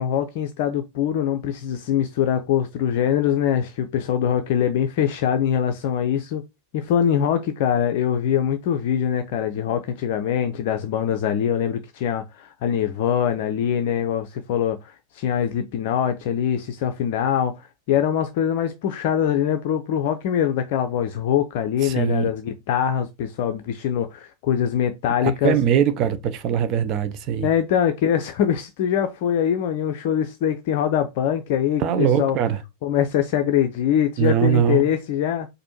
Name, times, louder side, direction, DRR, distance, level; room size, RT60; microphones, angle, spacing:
voice 1, 0.0-6.4 6.7-25.5 27.4-32.4 32.8-35.5, left 9 dB, 50° left, 0.5 m, -23 dB
voice 2, 21.8-22.3 25.2-27.5 31.8-32.6 34.2-34.8, right 9 dB, 40° right, 0.6 m, -21 dB
4.3 x 2.6 x 4.2 m
figure-of-eight pair, 90°, 0 cm